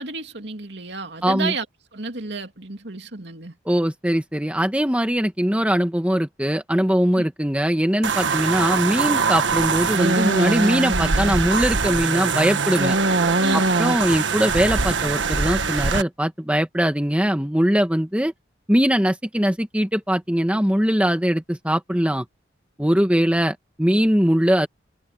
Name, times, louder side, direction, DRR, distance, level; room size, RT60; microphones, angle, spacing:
voice 1, 0.0-1.6 1.9-3.5 7.2-7.3 13.4-13.7, right 3 dB, 65° right, 2.9 m, -31 dB
voice 2, 1.2-1.5 3.6-13.0 13.5-18.3 18.7-22.2 22.8-24.7, equal, 5° right, 1.5 m, -21 dB
sound 1, 8.0-16.0, right 4 dB, 85° right, 1.5 m, -22 dB
head